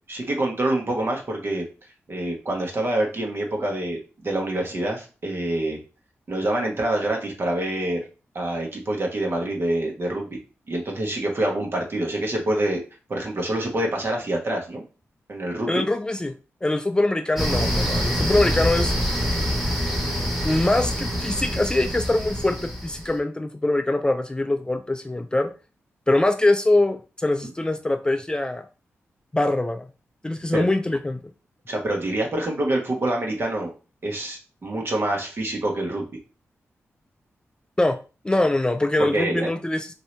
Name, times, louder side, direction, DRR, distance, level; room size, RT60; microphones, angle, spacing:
voice 1, 0.1-1.6 2.1-5.8 6.3-8.0 8.3-10.4 10.7-12.8 13.1-14.8 15.3-15.8 30.5-30.7 31.7-33.7 34.0-36.2 39.0-39.5, right 1 dB, 50° right, 1 dB, 1.1 m, -26 dB
voice 2, 15.7-16.3 16.6-18.9 20.4-25.5 26.1-28.7 29.3-29.9 30.2-31.2 37.8-38.0 38.2-39.9, left 2 dB, 15° left, 8 dB, 0.3 m, -23 dB
sound 1, 17.4-23.2, equal, 5° right, 1.3 m, -25 dB
2.8 x 2.7 x 3.2 m, 0.33 s
cardioid pair, 60°, 5 cm